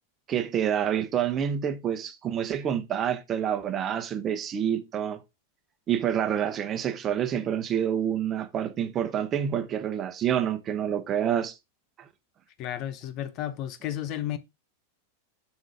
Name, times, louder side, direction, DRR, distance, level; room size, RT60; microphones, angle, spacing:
voice 1, 0.3-5.2 5.9-11.6, right 9 dB, 30° right, 1.1 m, -27 dB
voice 2, 12.6-14.4, left 12 dB, 40° left, 0.9 m, -32 dB
7.4 x 7.1 x 3.5 m
figure-of-eight pair, 90°, 0 cm